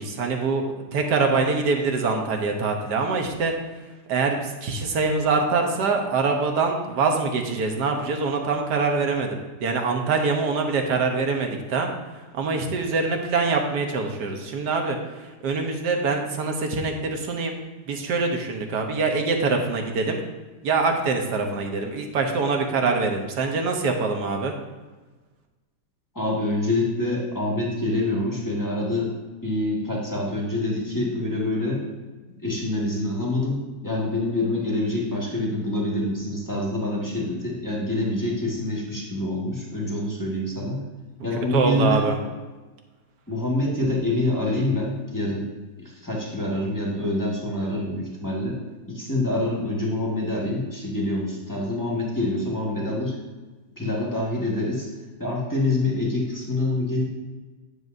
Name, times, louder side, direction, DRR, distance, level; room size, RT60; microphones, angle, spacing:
voice 1, 0.0-3.5 4.1-11.9 12.3-17.5 17.9-20.2 20.6-24.5 41.5-42.1, right 4 dB, 60° right, 3 dB, 1.4 m, -24 dB
voice 2, 26.1-29.1 29.4-31.8 32.4-40.8 41.2-42.0 43.3-45.5 45.8-48.6 48.9-53.1 53.8-54.9 55.2-57.0, left 1 dB, 10° left, -4 dB, 1.3 m, -26 dB
9.7 x 7.3 x 2.6 m, 1.2 s
omnidirectional pair, 2.2 m